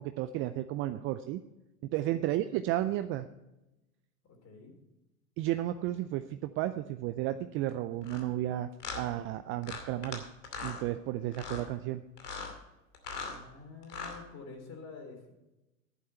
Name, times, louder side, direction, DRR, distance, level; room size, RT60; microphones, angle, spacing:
voice 1, 0.0-1.4 1.9-3.3 5.4-10.2 10.6-12.0, right 14 dB, 30° right, 11 dB, 0.4 m, -33 dB
voice 2, 4.2-4.7 13.1-15.3, left 4 dB, 35° left, 4 dB, 3.8 m, -48 dB
sound 1, 8.0-8.2 8.8-9.0 9.6-10.2 10.4-10.8 11.3-11.6 12.2-12.5 12.9-13.4 13.8-14.2, left 4 dB, 80° left, 2.6 m, -39 dB
11.0 x 11.0 x 4.4 m, 0.96 s
hypercardioid pair, 100°, 46 cm